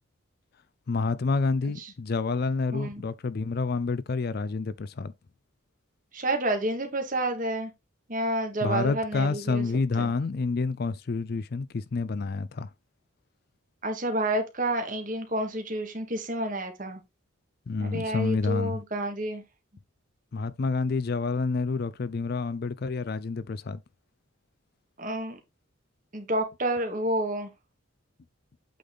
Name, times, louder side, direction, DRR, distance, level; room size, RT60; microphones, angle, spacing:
voice 1, 0.9-5.1 8.6-12.7 17.7-18.8 20.3-23.8, left 4 dB, 50° left, 0.4 m, -28 dB
voice 2, 2.7-3.0 6.1-7.7 8.1-9.6 10.0-10.1 13.8-17.0 17.8-19.4 25.0-25.4 26.1-27.5, right 1 dB, 40° right, 1.6 m, -29 dB
8.4 x 3.9 x 3.6 m
head